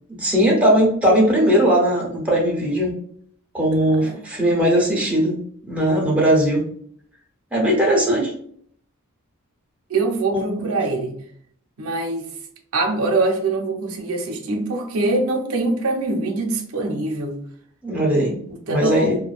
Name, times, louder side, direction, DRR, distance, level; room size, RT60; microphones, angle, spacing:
voice 1, 0.1-2.9 3.5-6.6 7.5-8.3 10.3-10.7 17.8-18.4 18.7-19.2, equal, 5° right, -3 dB, 0.6 m, -19 dB
voice 2, 3.8-4.2 9.9-11.2 11.8-12.3 12.7-17.4 18.7-19.2, right 3 dB, 80° right, 1 dB, 0.5 m, -23 dB
2.4 x 2.2 x 2.3 m, 0.62 s
head